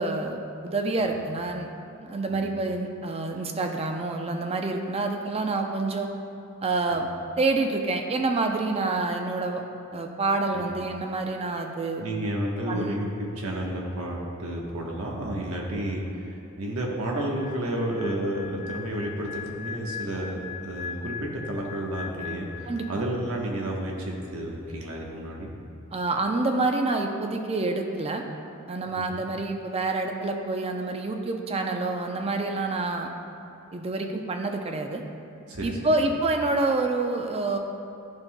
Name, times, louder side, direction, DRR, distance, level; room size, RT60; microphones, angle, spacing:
voice 1, 0.0-1.7 2.0-6.1 6.6-7.1 7.4-9.6 9.9-12.0 12.7-13.0 22.7-22.9 25.9-28.2 28.7-33.1 33.7-35.0 35.6-37.6, right 3 dB, 30° right, 4 dB, 0.5 m, -27 dB
voice 2, 12.0-25.6 28.9-29.2 35.5-35.8, right 1 dB, 80° right, -1 dB, 1.1 m, -31 dB
sound 1, 17.0-23.4 23.7-24.0, left 8 dB, 40° left, 0.3 m, -40 dB
11.5 x 5.6 x 2.2 m, 2.7 s
head